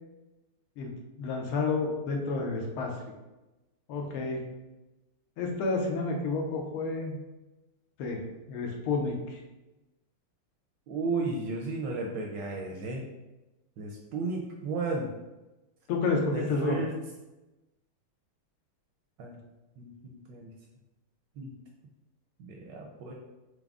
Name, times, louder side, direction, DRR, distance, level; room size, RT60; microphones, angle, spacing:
voice 1, 1.2-2.9 3.9-4.4 5.4-7.2 8.0-8.2 8.5-9.4 15.9-16.8, left 3 dB, 85° left, 1 dB, 1.5 m, -30 dB
voice 2, 10.9-13.0 13.8-15.1 16.3-16.9 19.2-19.4 19.8-20.5 21.4-21.5 22.4-23.1, right 3 dB, 75° right, 0 dB, 1.0 m, -34 dB
4.7 x 2.1 x 3.5 m, 1.0 s
omnidirectional pair, 2.3 m